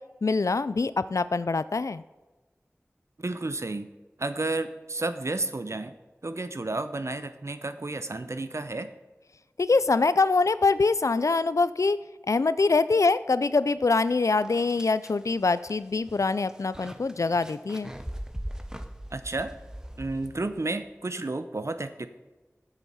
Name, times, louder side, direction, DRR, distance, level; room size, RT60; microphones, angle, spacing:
voice 1, 0.2-2.0 9.6-12.0 12.3-17.9, left 3 dB, 90° left, 15 dB, 0.4 m, -24 dB
voice 2, 3.2-3.9 4.2-5.9 6.2-8.9 19.1-19.5 20.0-22.1, right 2 dB, 65° right, 11 dB, 0.6 m, -31 dB
sound 1, 13.8-13.9 14.3-20.7, equal, 10° right, 0.8 m, -41 dB
8.0 x 7.4 x 5.5 m, 1.2 s
wide cardioid pair, 40°, 5 cm